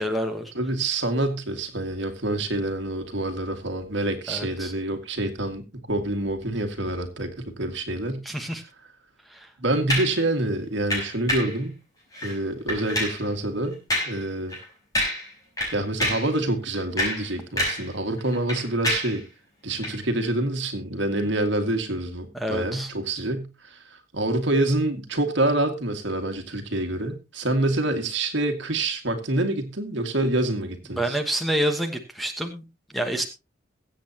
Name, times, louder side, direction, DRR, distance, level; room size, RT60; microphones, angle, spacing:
voice 1, 0.0-0.5 4.3-4.7 8.2-8.6 9.3-9.5 22.3-22.9 31.0-32.6 32.9-33.2, equal, ahead, 6 dB, 1.2 m, -27 dB
voice 2, 0.5-5.6 5.9-8.2 9.6-11.8 12.2-13.8 14.1-14.5 15.7-19.2 19.6-23.8 24.1-31.2, right 2 dB, 60° right, 5 dB, 2.1 m, -26 dB
sound 1, 9.9-10.2 10.9-11.6 12.1-12.4 12.7-13.2 13.9-14.2 14.5-14.6 15.0-15.3 15.6-16.3 16.8-17.9 18.2-19.2 19.8-20.0, equal, 20° left, 5.3 m, -27 dB
22.0 x 8.0 x 2.9 m, 0.26 s
head